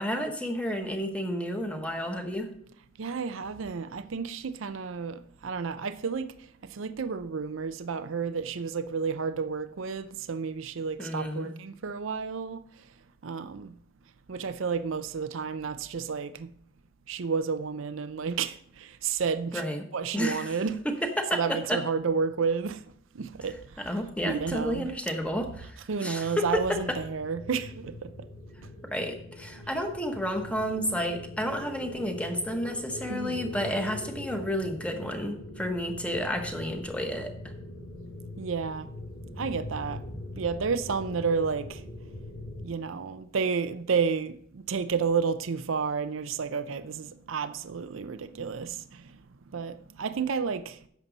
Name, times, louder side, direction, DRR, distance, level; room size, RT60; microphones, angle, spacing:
voice 1, 0.0-2.5 11.0-11.5 19.5-19.8 20.1-20.5 20.8-21.8 23.8-27.0 28.8-37.3, equal, 5° left, 1.1 m, -31 dB
voice 2, 3.0-6.3 6.6-12.6 13.2-13.8 14.3-16.5 17.1-19.6 19.9-20.8 21.3-22.8 23.1-23.9 24.2-24.9 25.9-28.1 33.1-33.4 38.4-38.9 39.4-40.0 40.4-41.8 42.6-49.0 49.5-50.8, right 5 dB, 75° right, 0.5 m, -31 dB
sound 1, 26.2-42.6, left 1 dB, 70° left, 2.2 m, -42 dB
11.0 x 7.5 x 4.0 m
head